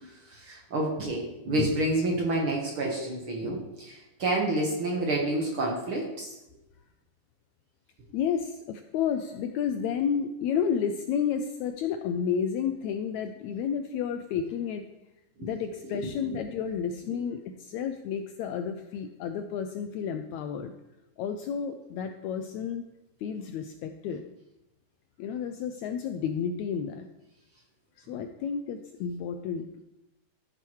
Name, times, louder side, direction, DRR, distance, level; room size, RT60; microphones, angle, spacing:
voice 1, 0.3-6.3 15.9-16.4, right 1 dB, 55° right, -1 dB, 1.7 m, -29 dB
voice 2, 8.1-14.8 15.4-20.7 21.2-22.9 23.2-24.2 25.2-27.1 28.0-29.8, left 7 dB, 80° left, 6 dB, 1.7 m, -31 dB
15.0 x 6.9 x 3.1 m, 0.95 s
omnidirectional pair, 3.7 m